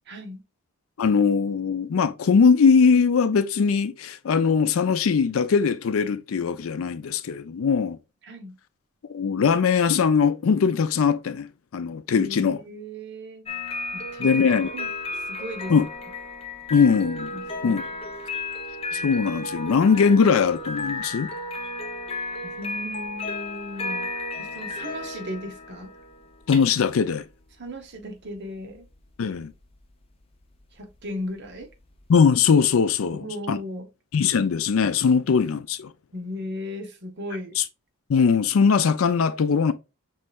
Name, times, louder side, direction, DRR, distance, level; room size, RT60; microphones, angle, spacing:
voice 1, 0.1-0.4 8.2-8.6 12.1-13.5 13.9-14.4 14.7-14.9 15.3-15.8 17.3-17.8 22.4-24.1 24.4-25.9 27.6-28.9 30.7-31.7 33.1-33.9 36.1-37.6, left 1 dB, 55° right, 0.9 m, -36 dB
voice 2, 1.0-8.0 9.1-12.6 14.2-14.7 15.7-15.9 16.7-17.3 17.6-17.8 18.9-21.3 26.5-27.2 29.2-29.5 32.1-33.2 33.5-33.6 34.1-35.9 37.6-37.7 38.1-39.7, left 6 dB, 70° left, 0.4 m, -20 dB
sound 1, 13.5-32.5, left 2 dB, 25° left, 0.6 m, -34 dB
5.4 x 3.2 x 2.3 m
head